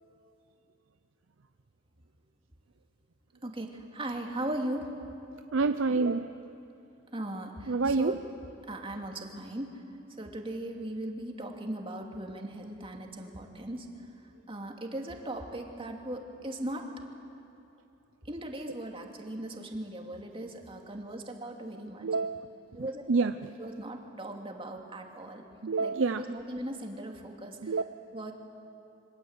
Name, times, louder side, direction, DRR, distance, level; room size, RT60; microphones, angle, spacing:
voice 1, 3.4-4.9 7.1-8.2 8.7-9.7 10.2-13.9 14.5-16.9 18.2-22.1 22.7-23.0 23.6-25.4 25.8-27.7 28.1-28.3, right 1 dB, 30° right, 2 dB, 2.6 m, -38 dB
voice 2, 5.5-6.4 7.7-8.2 22.0-22.5 22.8-23.5 25.6-26.2 27.6-27.8, right 4 dB, 80° right, 10 dB, 0.6 m, -28 dB
27.5 x 24.5 x 8.1 m, 2.8 s
head